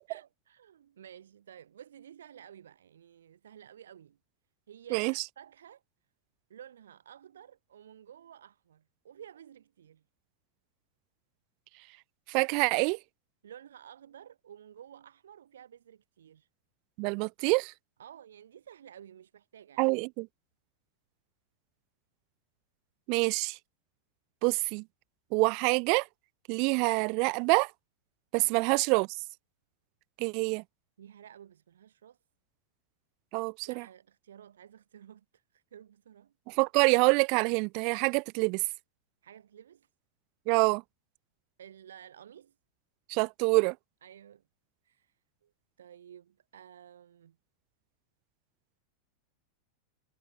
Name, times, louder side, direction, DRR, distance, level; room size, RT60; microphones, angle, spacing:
voice 1, 0.1-4.2 4.7-5.8 6.5-10.0 13.4-16.5 18.0-19.9 28.4-28.6 31.0-32.2 33.6-36.3 39.2-39.9 41.6-42.5 44.0-44.4 44.8-45.1 45.4-45.5 45.8-47.4, right 9 dB, 65° right, 2.8 m, -52 dB
voice 2, 4.9-5.2 12.3-13.0 17.0-17.7 19.8-20.3 23.1-23.6 24.4-24.8 25.3-26.1 26.5-27.7 28.3-29.1 30.2-30.6 33.3-33.8 36.5-38.6 40.5-40.8 43.1-43.8, right 33 dB, 45° right, 0.4 m, -26 dB
figure-of-eight pair, 90°, 0 cm